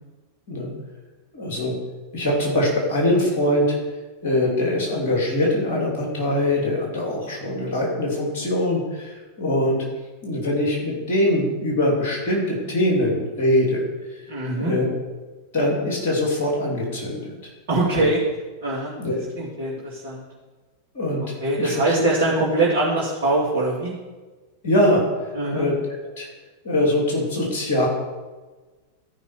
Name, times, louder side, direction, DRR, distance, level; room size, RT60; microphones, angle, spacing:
voice 1, 1.3-1.7 2.1-3.7 4.2-9.8 10.2-13.9 14.5-14.9 15.5-17.5 17.9-18.1 18.9-19.2 20.9-21.2 21.6-21.8 24.6-25.0 25.5-25.7 26.2-26.3 26.6-27.9, left 1 dB, 55° left, -2 dB, 2.9 m, -22 dB
voice 2, 14.3-14.7 17.7-18.2 18.6-18.9 19.4-20.3 21.4-23.9 25.3-25.7, right 2 dB, 55° right, -6 dB, 2.4 m, -22 dB
13.5 x 5.6 x 4.5 m, 1.3 s
figure-of-eight pair, 90°, 0 cm